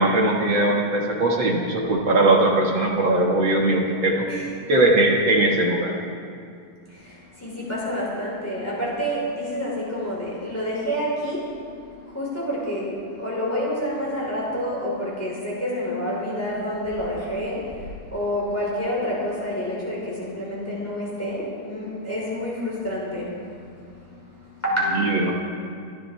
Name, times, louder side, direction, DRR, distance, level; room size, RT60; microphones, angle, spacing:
voice 1, 0.0-4.3 4.7-5.9 25.0-25.3, right 2 dB, 55° right, -2 dB, 1.3 m, -20 dB
voice 2, 6.9-23.4 23.8-25.1, equal, 5° left, -6 dB, 4.9 m, -28 dB
26.0 x 11.5 x 4.4 m, 2.3 s
omnidirectional pair, 4.3 m